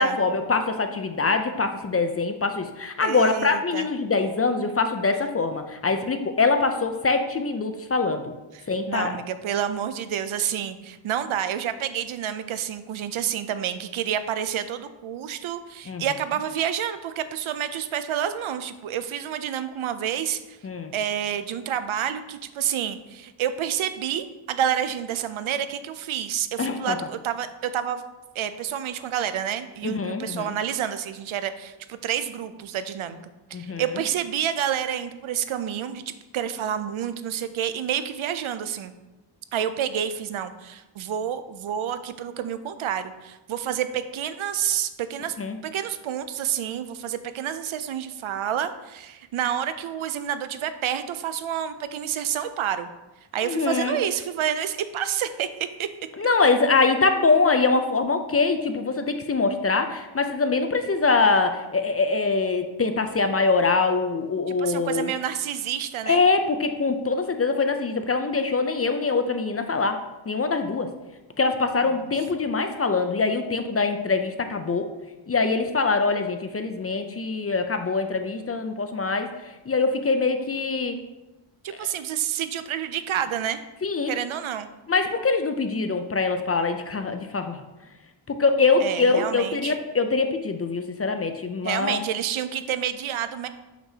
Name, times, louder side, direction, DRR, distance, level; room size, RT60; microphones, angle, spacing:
voice 1, 0.0-8.3 8.7-9.2 15.9-16.0 20.6-20.9 26.6-27.0 29.8-30.5 33.5-33.8 45.4-45.6 53.4-54.0 56.2-65.1 66.1-70.0 70.3-70.9 71.4-74.9 75.3-81.0 81.8-81.9 83.8-84.1 84.9-87.6 88.3-92.0, left 4 dB, 30° left, 7 dB, 0.4 m, -23 dB
voice 2, 3.0-3.9 8.5-20.6 20.9-28.0 28.4-33.2 33.5-38.9 39.5-45.4 45.6-52.9 53.3-55.9 64.5-66.2 71.9-72.1 81.6-83.6 84.1-84.7 88.8-89.7 91.6-93.5, right 9 dB, 75° right, 11 dB, 0.6 m, -29 dB
6.5 x 6.0 x 2.8 m, 1.1 s
wide cardioid pair, 100°, 49 cm